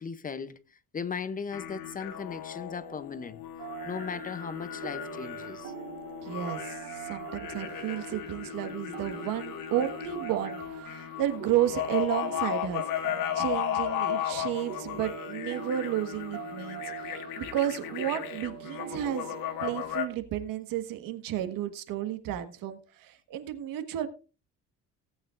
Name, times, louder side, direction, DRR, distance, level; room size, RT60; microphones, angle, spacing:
voice 1, 0.0-3.4 3.8-5.7, left 6 dB, 25° left, 0.6 m, -37 dB
sound 1, 1.5-20.1, left 11 dB, 80° left, 1.6 m, -36 dB
sound 2, 3.6-19.9, right 12 dB, 55° right, 0.9 m, -44 dB
voice 2, 6.2-12.9 13.3-24.1, right 12 dB, 85° right, 1.5 m, -32 dB
17.5 x 8.8 x 2.5 m
cardioid pair, 130°, 33 cm